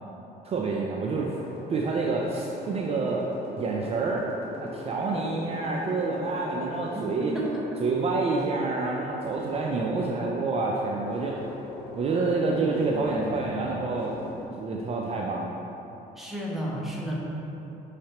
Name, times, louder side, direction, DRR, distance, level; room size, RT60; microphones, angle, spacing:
voice 1, 0.4-1.3 1.7-3.3 3.6-4.2 4.6-7.3 7.8-11.4 12.0-14.2 14.6-15.5, right 3 dB, 35° right, -2 dB, 0.3 m, -28 dB
sound 1, 1.2-14.5, left 2 dB, 35° left, 1.4 m, -40 dB
voice 2, 6.9-7.8 16.2-17.2, right 1 dB, ahead, -4 dB, 0.7 m, -32 dB
5.5 x 3.2 x 2.9 m, 3.0 s
cardioid pair, 110°, 17 cm